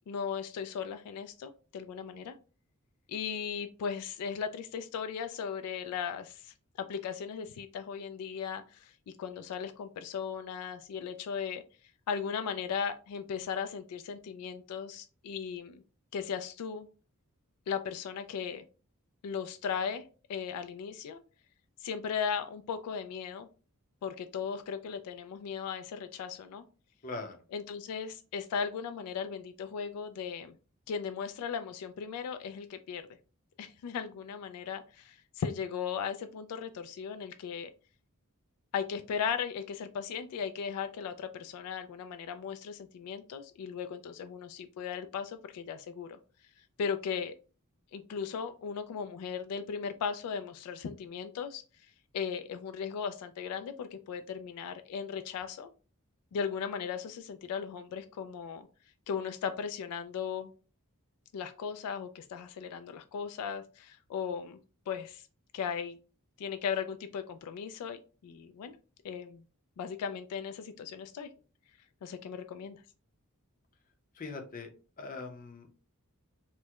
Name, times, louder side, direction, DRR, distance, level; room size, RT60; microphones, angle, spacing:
voice 1, 0.1-2.3 3.1-6.5 6.9-8.9 9.2-11.6 12.1-15.8 16.1-16.9 17.7-18.6 19.2-20.0 20.3-21.2 21.8-23.5 24.0-26.6 27.5-30.6 30.9-33.0 33.6-37.7 38.7-46.2 46.8-47.3 47.9-55.7 56.3-58.7 59.1-60.5 61.3-64.6 64.9-65.3 65.5-66.0 66.4-68.8 69.0-69.4 69.8-71.3 72.0-72.8, left 6 dB, 85° left, 12 dB, 0.3 m, -37 dB
voice 2, 27.0-27.4 74.1-74.7 75.0-75.8, left 3 dB, 40° left, 4 dB, 0.6 m, -41 dB
4.4 x 2.1 x 2.3 m, 0.36 s
head